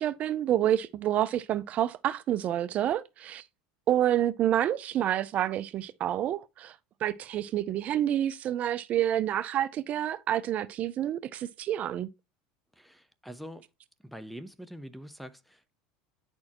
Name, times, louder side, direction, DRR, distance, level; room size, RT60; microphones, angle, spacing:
voice 1, 0.0-3.4 3.9-6.8 7.0-12.1, right 11 dB, 40° right, 0.4 m, -28 dB
voice 2, 12.8-13.6 14.0-15.8, equal, ahead, 0.6 m, -44 dB
9.6 x 4.3 x 2.9 m
supercardioid pair, 125°, 4 cm